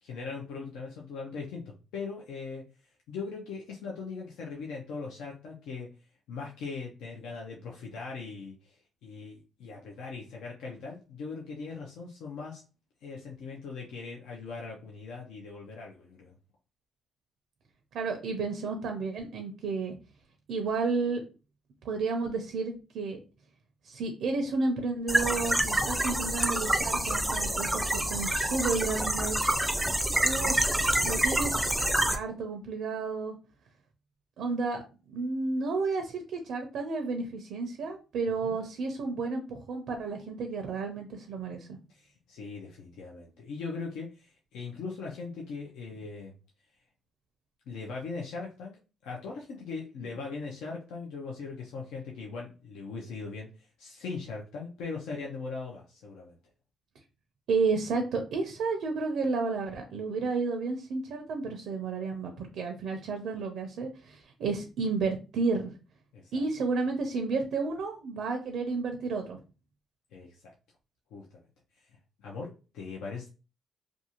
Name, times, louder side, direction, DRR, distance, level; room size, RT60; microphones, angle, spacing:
voice 1, 0.0-1.6 1.9-2.7 3.1-5.9 6.3-12.6 13.0-16.3 38.4-38.6 41.9-46.3 47.7-48.7 49.0-56.3 66.1-66.4 70.1-70.5 71.1-71.4 72.2-73.3, left 4 dB, 90° left, -2 dB, 0.5 m, -40 dB
voice 2, 17.9-19.9 20.5-21.2 21.8-23.2 23.8-29.5 30.2-31.6 32.1-33.4 34.4-34.8 35.1-41.8 57.5-65.7 66.3-69.4, right 4 dB, 75° right, 4 dB, 0.5 m, -32 dB
sound 1, 25.1-32.2, right 1 dB, 5° right, 0.4 m, -27 dB
2.5 x 2.3 x 2.8 m, 0.33 s
cardioid pair, 90°, 0 cm